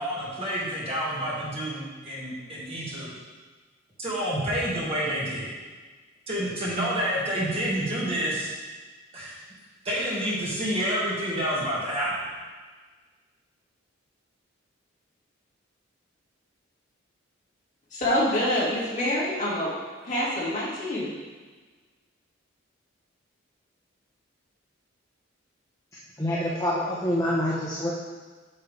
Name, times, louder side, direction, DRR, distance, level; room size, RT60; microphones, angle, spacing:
voice 1, 0.0-3.1 4.0-5.5 6.3-8.5 9.1-9.3 9.8-12.1, equal, 30° right, -7 dB, 2.1 m, -28 dB
voice 2, 17.9-19.7 20.0-21.1, left 1 dB, 40° left, -8 dB, 2.4 m, -26 dB
voice 3, 26.2-27.9, left 1 dB, 15° left, -6 dB, 1.0 m, -26 dB
8.5 x 6.6 x 3.4 m, 1.4 s
head